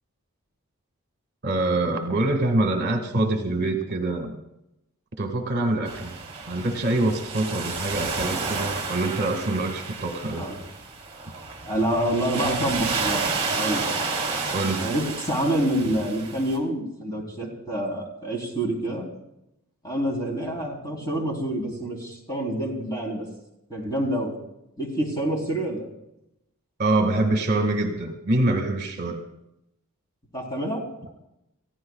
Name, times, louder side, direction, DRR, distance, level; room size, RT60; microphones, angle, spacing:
voice 1, 1.4-4.4 5.2-6.1 6.5-10.5 14.5-14.9 26.8-29.2 31.0-31.1, right 2 dB, 50° right, 4 dB, 1.8 m, -25 dB
sound 1, 5.9-16.6, right 4 dB, 25° right, 3.0 m, -31 dB
voice 2, 11.6-13.3 13.5-13.9 14.8-19.1 19.8-23.3 23.7-24.3 24.8-25.9 30.3-30.8, right 1 dB, 20° left, 0 dB, 3.8 m, -27 dB
29.0 x 15.0 x 2.4 m, 0.84 s
head